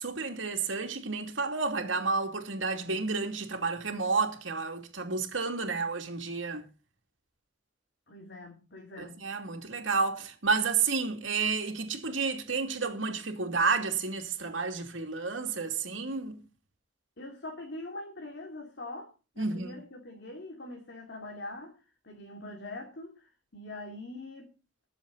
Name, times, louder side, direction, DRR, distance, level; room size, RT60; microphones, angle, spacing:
voice 1, 0.0-6.6 9.0-16.4 19.4-19.7, right 4 dB, 75° right, 2.8 m, -31 dB
voice 2, 8.1-9.2 17.2-21.8 22.0-24.5, left 2 dB, 60° left, 2.8 m, -43 dB
21.5 x 7.6 x 4.1 m
head